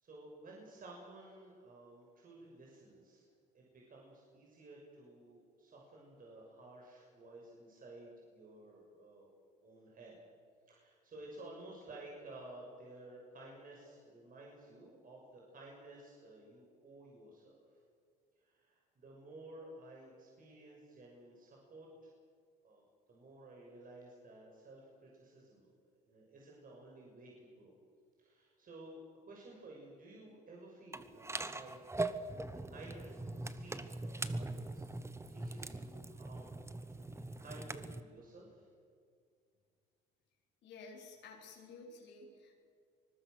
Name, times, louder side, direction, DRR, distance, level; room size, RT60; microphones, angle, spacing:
voice 1, 0.0-3.2 3.5-9.3 9.6-10.2 10.7-17.6 18.4-22.1 22.6-25.7 26.0-27.7 28.2-32.2 32.5-36.6 36.9-38.7, right 2 dB, 45° right, -2 dB, 6.3 m, -54 dB
sound 1, 30.9-38.0, right 2 dB, 15° right, 1.3 m, -41 dB
voice 2, 40.6-42.5, left 3 dB, 65° left, -1 dB, 4.3 m, -53 dB
24.5 x 20.5 x 6.5 m, 2.2 s
supercardioid pair, 70°, 20 cm